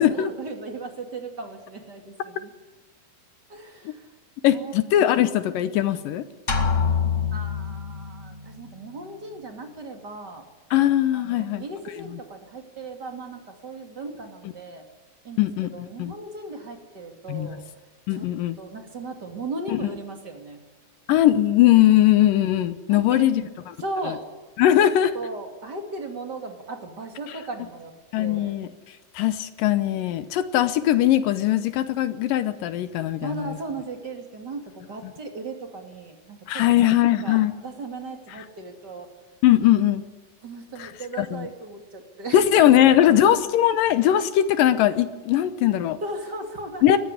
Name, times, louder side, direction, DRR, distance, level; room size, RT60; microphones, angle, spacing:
voice 1, 0.0-2.5 3.5-4.1 4.5-5.1 7.3-10.5 11.1-14.9 15.2-17.6 18.1-18.3 18.6-20.6 22.9-23.5 23.8-24.3 24.8-24.9 25.1-28.6 33.2-39.1 40.4-43.1 46.0-47.0, right 2 dB, 30° right, 4 dB, 2.7 m, -37 dB
voice 2, 4.4-6.3 10.7-11.6 15.4-16.1 17.3-17.5 18.1-18.6 19.7-19.9 21.1-23.4 24.6-25.1 28.1-28.7 29.2-33.5 36.5-37.5 39.4-40.0 40.8-40.9 41.2-41.5 42.3-46.0 46.8-47.0, left 12 dB, 75° left, 13 dB, 2.4 m, -20 dB
sound 1, 6.5-8.3, left 6 dB, 30° left, 1.6 m, -25 dB
20.5 x 15.0 x 9.9 m, 1.3 s
omnidirectional pair, 4.1 m